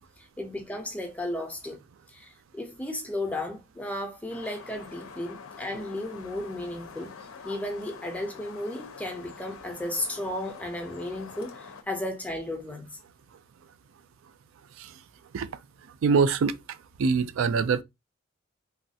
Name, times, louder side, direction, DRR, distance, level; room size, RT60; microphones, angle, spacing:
voice 1, 0.2-1.8 2.1-7.1 7.4-12.9, left 1 dB, 5° left, 0.5 m, -34 dB
sound 1, 4.3-11.8, left 5 dB, 90° left, 0.5 m, -46 dB
voice 2, 16.0-16.5 17.0-17.8, right 5 dB, 70° right, 0.3 m, -23 dB
3.1 x 2.3 x 2.7 m
head